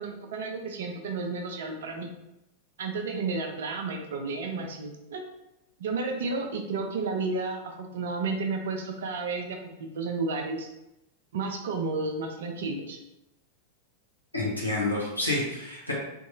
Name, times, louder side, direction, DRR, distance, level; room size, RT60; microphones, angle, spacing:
voice 1, 0.0-2.1 2.8-5.2 5.8-10.7 11.3-13.0, right 3 dB, 60° right, 3 dB, 0.5 m, -32 dB
voice 2, 14.3-15.9, left 2 dB, 85° left, -5 dB, 1.0 m, -29 dB
3.6 x 3.0 x 2.6 m, 0.89 s
figure-of-eight pair, 90°, 0 cm